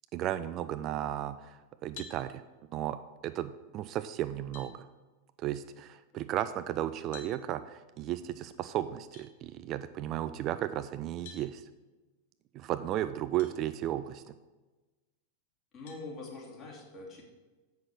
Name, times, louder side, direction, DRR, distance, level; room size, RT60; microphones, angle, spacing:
voice 1, 0.1-2.4 2.7-3.0 3.2-4.9 5.4-11.6 12.5-14.2, right 12 dB, 35° right, 12 dB, 0.3 m, -34 dB
sound 1, 1.9-2.2 3.9-4.0 4.5-4.7 7.1-7.3 9.1-9.3 11.2-11.5 13.4-13.5 14.2-14.3 15.9-16.1, left 6 dB, 55° left, 1.5 m, -48 dB
voice 2, 15.7-17.2, left 3 dB, 30° left, -2 dB, 2.5 m, -44 dB
7.7 x 5.9 x 6.1 m, 1.2 s
figure-of-eight pair, 90°, 0 cm